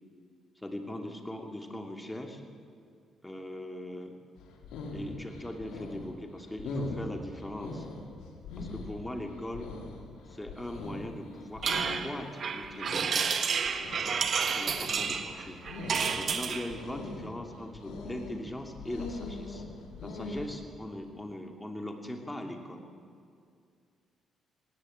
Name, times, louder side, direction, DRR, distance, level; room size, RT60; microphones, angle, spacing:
voice 1, 0.6-2.4 3.2-4.2 4.9-7.9 8.6-9.7 10.3-13.5 14.4-15.6 16.1-19.6 20.0-22.9, left 1 dB, 10° left, 3 dB, 2.8 m, -40 dB
sound 1, 4.4-20.6, left 3 dB, 90° left, 3.9 m, -42 dB
sound 2, 11.6-16.7, right 6 dB, 50° right, 1.5 m, -30 dB
19.0 x 18.0 x 8.8 m, 2.4 s
cardioid pair, 90°, 0 cm